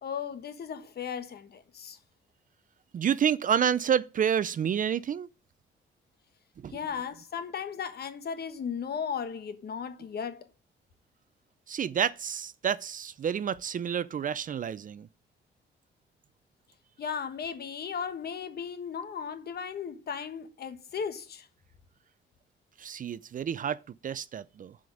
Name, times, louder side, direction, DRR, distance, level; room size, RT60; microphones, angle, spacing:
voice 1, 0.0-2.0 6.7-10.5 17.0-21.5, left 7 dB, 55° left, 1.3 m, -36 dB
voice 2, 2.9-5.3 6.6-6.8 11.7-15.1 22.8-24.8, right 8 dB, 45° right, 0.5 m, -29 dB
7.6 x 5.1 x 7.1 m
cardioid pair, 90°, 20 cm